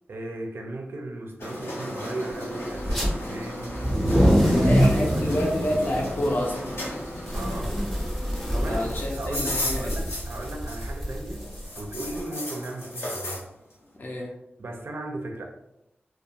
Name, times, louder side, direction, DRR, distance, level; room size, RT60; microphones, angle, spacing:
voice 1, 0.1-3.9 4.4-5.5 7.3-7.8 8.5-11.5 11.8-13.4 14.6-15.4, right 2 dB, 70° right, 2 dB, 0.4 m, -36 dB
sound 1, 1.4-11.1 11.4-13.4, left 1 dB, 85° left, 0.7 m, -35 dB
sound 2, 2.8-3.1 3.7-12.2, equal, 5° left, 0.6 m, -25 dB
voice 2, 4.4-6.7 8.7-10.0 14.0-14.3, left 1 dB, 50° left, -2 dB, 0.5 m, -28 dB
2.4 x 2.1 x 2.8 m, 0.87 s
wide cardioid pair, 90°, 4 cm